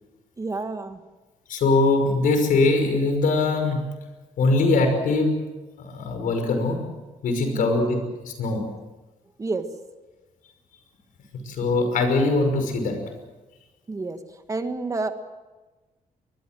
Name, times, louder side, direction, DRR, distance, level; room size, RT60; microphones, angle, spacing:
voice 1, 0.4-1.0 7.5-7.9 9.4-9.7 13.9-14.2 14.5-15.1, right 3 dB, 25° right, 8 dB, 1.6 m, -29 dB
voice 2, 1.5-3.8 4.4-5.4 5.8-6.8 7.2-8.6 11.5-13.0, left 3 dB, 80° left, 6 dB, 5.6 m, -22 dB
24.0 x 21.0 x 7.7 m, 1.2 s
cardioid pair, 130°, 14 cm